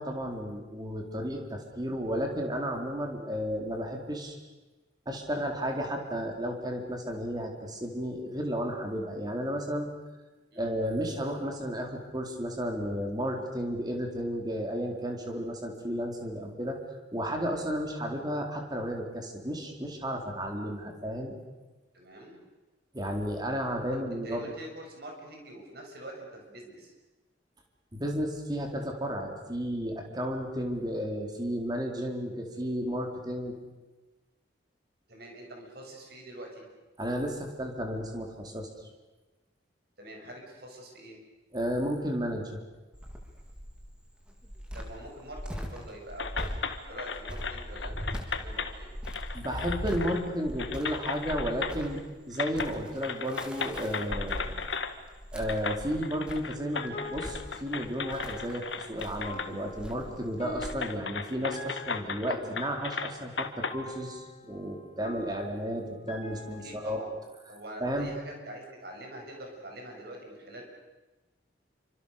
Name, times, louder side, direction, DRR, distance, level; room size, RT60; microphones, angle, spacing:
voice 1, 0.0-4.4 5.1-9.9 10.6-16.8 17.1-21.4 22.9-24.5 27.9-33.6 37.0-38.7 41.5-42.6 49.3-54.6 55.3-67.0 67.8-68.1, equal, 20° right, 2 dB, 4.2 m, -33 dB
voice 2, 21.9-22.4 24.2-26.9 35.1-36.6 40.0-41.2 44.7-46.6 46.9-48.9 66.6-67.1 67.5-70.6, right 1 dB, 60° right, 1 dB, 7.6 m, -45 dB
Cricket, 42.9-60.7, equal, 5° right, 3.5 m, -40 dB
sound 1, 46.2-48.7 49.1-50.3 50.6-52.0 52.3-52.7 53.0-54.9 55.5-59.5 59.9-60.0 60.6-63.8, left 5 dB, 80° left, 1.8 m, -36 dB
sound 2, 56.6-67.2, left 1 dB, 35° left, 2.7 m, -45 dB
28.0 x 25.5 x 6.8 m, 1.2 s
head